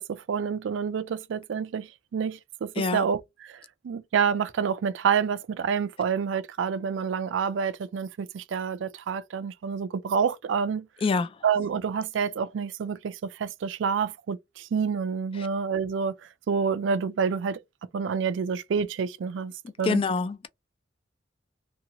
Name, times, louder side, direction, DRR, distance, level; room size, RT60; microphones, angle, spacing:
voice 1, 0.0-10.9 11.4-16.1 16.5-17.6 17.9-19.5 19.8-20.0, right 6 dB, 85° right, 0.4 m, -28 dB
voice 2, 11.0-11.4 15.4-15.5 19.8-20.5, left 4 dB, 30° left, 0.3 m, -26 dB
2.7 x 2.6 x 2.8 m
head